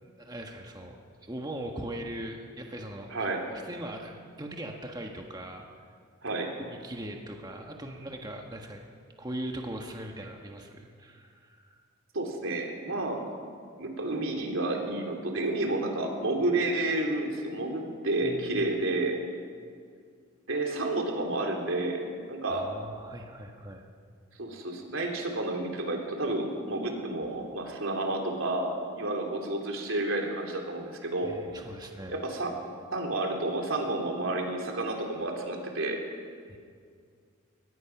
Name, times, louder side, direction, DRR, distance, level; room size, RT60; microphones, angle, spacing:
voice 1, 0.0-3.3 3.6-5.6 6.6-8.9 9.2-11.8 18.2-18.8 22.5-23.8 31.2-32.2 36.5-36.6, right 1 dB, 20° right, 1 dB, 1.4 m, -40 dB
voice 2, 3.1-3.4 6.2-6.5 12.1-13.3 13.8-19.2 20.5-22.6 24.4-31.4 32.1-32.5 32.9-36.0, right 2 dB, 75° right, 1 dB, 3.3 m, -30 dB
22.5 x 19.5 x 6.0 m, 2.1 s
head